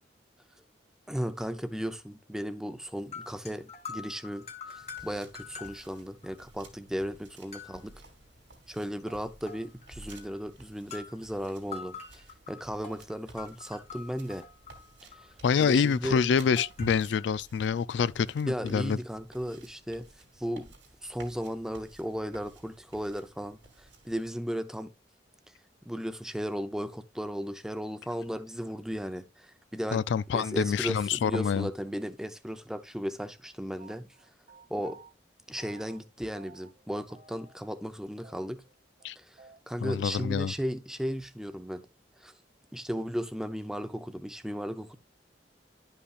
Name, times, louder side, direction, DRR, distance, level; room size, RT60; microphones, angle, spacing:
voice 1, 1.1-7.9 8.7-14.4 15.6-16.2 18.5-20.1 20.4-20.7 21.0-24.9 25.9-30.0 30.3-34.1 34.7-35.0 35.5-38.6 39.2-39.4 39.7-41.8 42.2-42.3 42.7-45.0, equal, 5° right, 0.6 m, -35 dB
sound 1, 3.0-6.4 6.7-6.8 7.5-7.9 9.0-10.4 10.9-11.2 11.7-17.3, left 5 dB, 35° left, 1.3 m, -46 dB
sound 2, 4.8-24.3, right 2 dB, 85° right, 2.7 m, -53 dB
voice 2, 15.4-19.0 29.9-31.7 39.0-39.2 39.8-40.5, left 6 dB, 75° left, 0.3 m, -26 dB
sound 3, 33.8-35.1 35.6-36.1 36.3-36.8 37.1-37.9 38.2-38.3 38.6-38.7 39.0-39.1 39.4-40.3, right 3 dB, 40° right, 0.8 m, -53 dB
11.5 x 5.6 x 2.4 m
head